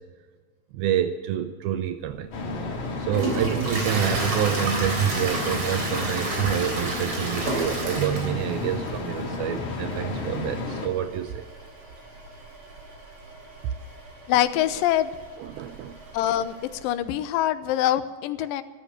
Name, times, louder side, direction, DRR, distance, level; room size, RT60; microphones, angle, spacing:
voice 1, 0.7-2.3 3.0-11.4 13.6-13.7 15.4-16.0 18.4-18.5, right 10 dB, 80° right, 8 dB, 2.6 m, -27 dB
Toilet flush, 2.1-16.8, right 2 dB, 40° right, 4.2 m, -33 dB
sound 1, 2.3-10.9, left 3 dB, 55° left, 3.8 m, -32 dB
voice 2, 14.3-15.1 16.1-16.5 16.8-18.6, left 12 dB, 75° left, 12 dB, 2.4 m, -24 dB
15.0 x 13.5 x 6.7 m, 1.5 s
omnidirectional pair, 4.3 m